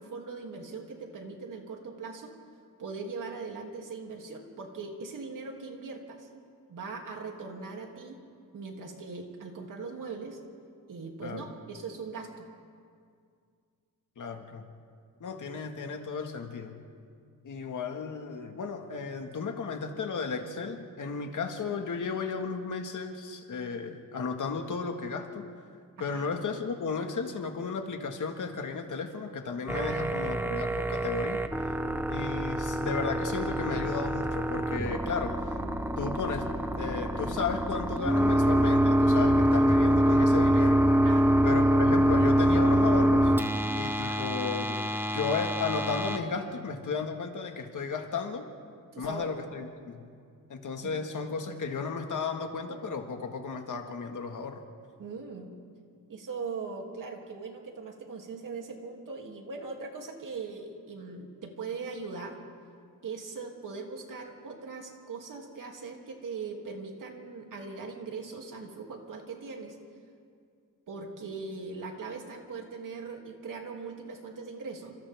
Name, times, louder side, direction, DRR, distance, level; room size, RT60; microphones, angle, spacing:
voice 1, 0.0-2.4 2.8-6.3 6.7-8.2 8.5-10.4 10.9-12.4 26.0-26.2 29.7-30.3 41.0-41.3 43.8-44.2 48.9-49.3 50.8-50.9 55.0-55.5 56.1-62.4 63.0-69.8 70.9-75.0, right 4 dB, 65° right, 1 dB, 2.9 m, -40 dB
voice 2, 14.2-14.7 15.2-16.8 17.4-25.4 26.0-31.4 32.1-35.5 36.0-36.5 36.8-40.8 41.4-43.3 43.7-48.5 49.0-50.1 50.5-54.6, left 5 dB, 60° left, 4 dB, 1.9 m, -34 dB
sound 1, 29.7-46.2, equal, 5° right, 0.9 m, -25 dB
30.0 x 27.0 x 3.6 m, 2.2 s
wide cardioid pair, 150°, 34 cm